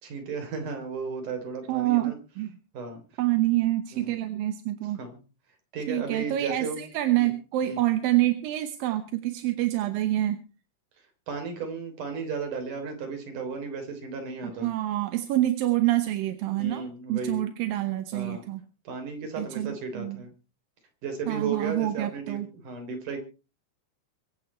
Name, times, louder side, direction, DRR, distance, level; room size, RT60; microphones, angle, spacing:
voice 1, 0.0-2.1 2.7-3.0 3.9-4.1 5.0-5.2 5.7-6.8 7.2-7.3 7.6-7.8 11.3-14.7 16.6-17.4 18.1-18.4 18.8-20.3 21.0-23.2, right 4 dB, 50° right, 5 dB, 4.9 m, -34 dB
voice 2, 1.7-2.5 3.2-5.0 5.9-10.4 14.6-18.6 19.4-20.2 21.3-22.5, right 15 dB, 70° right, 8 dB, 2.5 m, -27 dB
24.5 x 8.7 x 4.4 m, 0.35 s
omnidirectional pair, 4.7 m